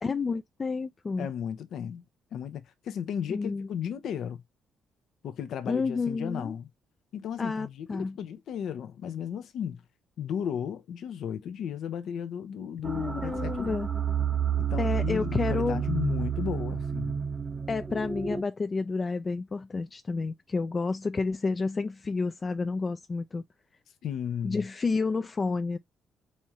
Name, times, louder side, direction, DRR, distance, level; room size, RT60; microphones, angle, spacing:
voice 1, 0.0-1.3 3.3-3.7 5.7-6.6 7.4-8.2 12.8-13.9 14.8-15.8 17.7-23.4 24.4-25.8, left 4 dB, 35° left, 0.4 m, -30 dB
voice 2, 1.2-2.0 2.3-4.4 5.2-6.7 7.1-9.8 10.2-13.8 14.7-17.2 24.0-24.6, left 8 dB, 70° left, 0.7 m, -35 dB
sound 1, 12.8-18.4, right 8 dB, 30° right, 0.8 m, -30 dB
4.3 x 3.6 x 3.1 m
cardioid pair, 90°, 0 cm